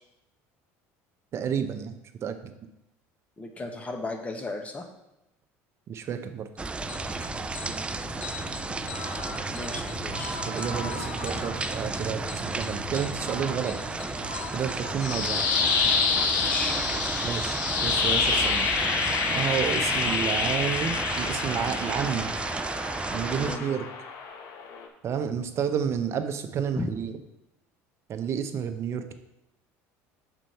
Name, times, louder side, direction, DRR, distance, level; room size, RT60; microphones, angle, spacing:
voice 1, 1.3-2.5 5.9-6.5 10.4-13.7 14.5-15.5 17.2-18.7 19.3-22.3 23.1-23.8 25.0-27.2 28.1-29.1, right 7 dB, 45° right, 7 dB, 0.7 m, -30 dB
voice 2, 3.4-4.9 9.5-10.3 16.4-17.3 23.4-23.6 26.8-26.9, left 2 dB, 20° left, 4 dB, 1.1 m, -36 dB
sound 1, 6.6-23.6, right 4 dB, 15° right, 0.3 m, -33 dB
sound 2, 6.8-21.4, left 7 dB, 90° left, 0.7 m, -41 dB
sound 3, 14.8-24.9, left 5 dB, 65° left, 1.0 m, -28 dB
6.1 x 4.5 x 5.4 m, 0.90 s
supercardioid pair, 105°, 7 cm